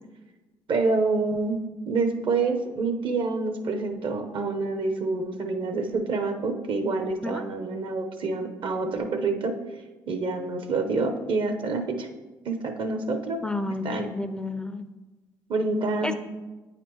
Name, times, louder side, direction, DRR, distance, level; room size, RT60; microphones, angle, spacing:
voice 1, 0.7-9.5 10.1-12.1 12.4-13.4 13.8-14.1 15.5-16.1, right 3 dB, 55° right, 6 dB, 0.8 m, -27 dB
voice 2, 13.4-14.9 16.0-16.1, left 2 dB, 10° left, 10 dB, 0.4 m, -31 dB
8.6 x 4.2 x 3.1 m, 1.2 s
supercardioid pair, 60°, 10 cm